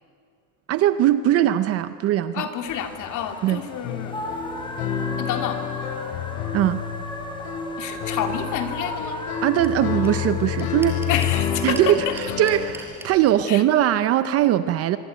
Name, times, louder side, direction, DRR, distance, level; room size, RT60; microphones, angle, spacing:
voice 1, 0.7-2.5 3.4-3.6 6.5-6.8 9.4-11.0 11.6-15.0, right 12 dB, 35° right, 13 dB, 0.6 m, -20 dB
voice 2, 2.3-4.2 5.2-5.6 7.8-9.2 11.1-12.1 13.5-13.6, left 9 dB, 40° left, 6 dB, 2.6 m, -28 dB
sound 1, 2.7-13.2, left 1 dB, 10° left, 3.7 m, -37 dB
sound 2, 3.8-12.7, left 8 dB, 65° left, 2.8 m, -29 dB
sound 3, 9.6-9.7 10.0-10.1 10.3-11.4 11.7-13.1, right 2 dB, 5° right, 4.9 m, -39 dB
24.5 x 24.5 x 9.2 m, 2.4 s
cardioid pair, 170°, 45 cm